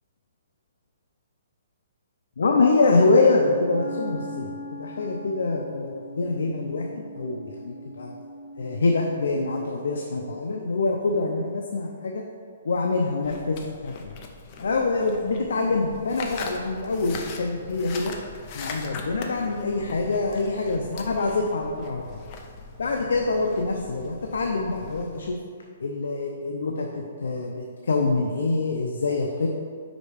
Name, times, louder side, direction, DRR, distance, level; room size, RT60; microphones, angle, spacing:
voice 1, 2.4-8.1 8.6-12.2 12.6-14.1 14.6-18.1 18.5-22.2 22.8-25.4 25.8-29.5, left 3 dB, 85° left, 1 dB, 0.6 m, -25 dB
Wind instrument woodwind instrument, 3.3-10.0, equal, 25° right, 1.2 m, -40 dB
sound 1, 13.2-25.3, left 4 dB, 30° left, 0.5 m, -41 dB
5.1 x 4.4 x 4.9 m, 2.1 s
hypercardioid pair, 165°, 0 cm